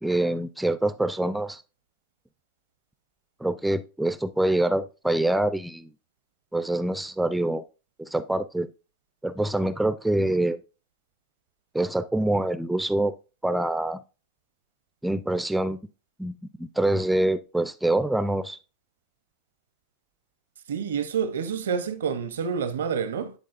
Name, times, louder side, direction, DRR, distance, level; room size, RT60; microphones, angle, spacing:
voice 1, 0.0-1.6 3.4-5.9 6.5-7.6 8.0-8.7 9.2-10.6 11.7-13.1 13.4-14.0 15.0-15.8 16.2-18.6, right 1 dB, 5° right, 0.4 m, -25 dB
voice 2, 20.7-23.3, right 6 dB, 80° right, 0.7 m, -28 dB
10.0 x 3.7 x 2.5 m
hypercardioid pair, 95°, 0 cm